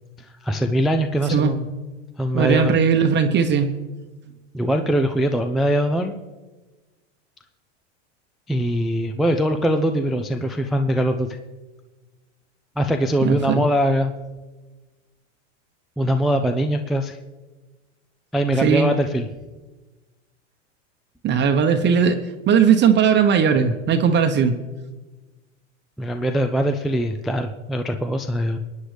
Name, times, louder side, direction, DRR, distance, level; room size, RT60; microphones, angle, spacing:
voice 1, 0.4-1.7 2.2-2.8 4.5-6.2 8.5-11.4 12.8-14.1 16.0-17.2 18.3-19.3 26.0-28.6, equal, ahead, 6 dB, 0.3 m, -22 dB
voice 2, 2.3-3.7 13.2-13.6 18.6-18.9 21.2-22.2 22.5-24.6, right 7 dB, 30° right, 6 dB, 0.9 m, -18 dB
23.5 x 9.6 x 3.3 m, 1.2 s
hypercardioid pair, 110°, 37 cm